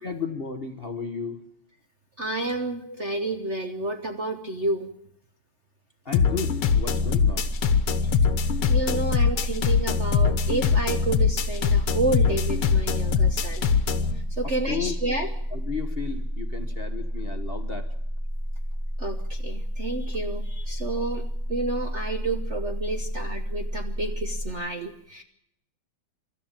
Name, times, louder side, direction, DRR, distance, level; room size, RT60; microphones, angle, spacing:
voice 1, 0.0-1.4 2.8-3.1 6.0-7.5 9.3-9.5 14.4-15.0 15.5-17.9, left 5 dB, 30° left, 7 dB, 1.3 m, -34 dB
voice 2, 2.2-4.9 8.0-8.1 8.7-13.7 14.3-15.3 19.0-21.2 21.5-25.2, right 2 dB, 40° right, 7 dB, 1.1 m, -30 dB
sound 1, 6.1-14.1, left 6 dB, 85° left, 2.2 m, -23 dB
sound 2, 6.6-24.5, equal, 20° right, 7.4 m, -31 dB
23.5 x 13.0 x 8.8 m, 0.77 s
omnidirectional pair, 2.4 m